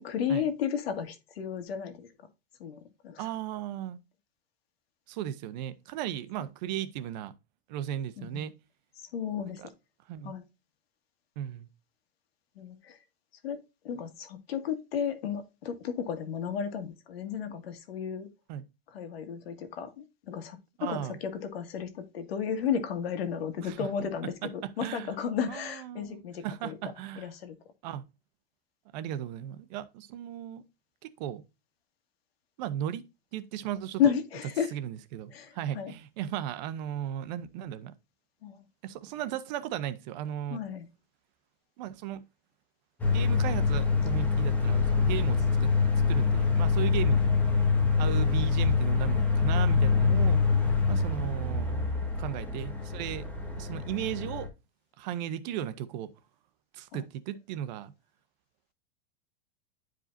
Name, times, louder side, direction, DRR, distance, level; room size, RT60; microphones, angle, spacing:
voice 1, 0.0-2.1 2.6-3.3 8.2-8.4 9.1-9.6 10.2-10.4 12.6-13.0 13.4-13.6 13.8-18.3 18.9-27.6 34.0-34.7 35.3-35.9 38.4-38.6 40.5-40.9 47.1-47.2 51.2-51.3 56.9-57.0, left 8 dB, 90° left, 1.9 m, -33 dB
voice 2, 3.2-4.0 5.1-7.3 7.7-8.5 9.6-9.7 10.1-10.4 11.4-11.7 18.5-18.6 20.8-21.2 23.6-24.1 24.8-25.1 25.5-27.3 27.8-28.0 28.9-30.6 31.0-31.4 32.6-33.1 33.3-34.1 34.7-37.9 38.8-40.6 41.8-42.2 43.1-45.7 46.1-47.3 48.0-50.4 50.9-53.2 53.6-54.5 55.0-56.1 56.7-57.9, right 11 dB, 45° right, 0.8 m, -36 dB
sound 1, 43.0-54.5, left 4 dB, 5° left, 1.1 m, -25 dB
10.5 x 5.0 x 2.6 m
supercardioid pair, 165°, 30 cm